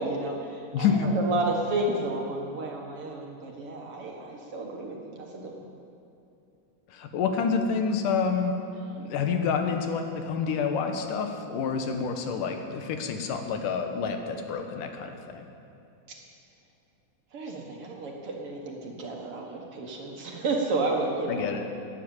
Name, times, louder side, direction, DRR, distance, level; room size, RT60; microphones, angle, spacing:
voice 1, 0.0-5.7 16.1-16.2 17.3-21.5, right 2 dB, 50° right, 0 dB, 2.3 m, -31 dB
voice 2, 0.7-1.1 6.9-8.5 8.9-15.5 21.3-21.6, left 6 dB, 85° left, 5 dB, 2.8 m, -28 dB
18.5 x 10.5 x 7.2 m, 2.8 s
omnidirectional pair, 3.7 m